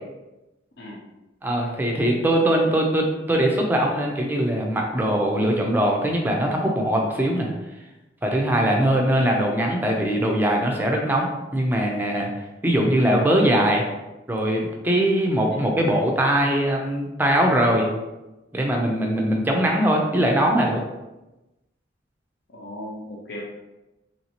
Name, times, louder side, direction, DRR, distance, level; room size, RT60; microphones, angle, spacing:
voice 1, 1.4-7.5 8.2-12.3 12.6-13.8 14.3-17.9 18.5-20.8, right 1 dB, 10° right, 0 dB, 0.4 m, -21 dB
voice 2, 22.5-23.4, left 1 dB, 60° left, -2 dB, 0.5 m, -37 dB
3.1 x 2.8 x 2.8 m, 1.0 s
head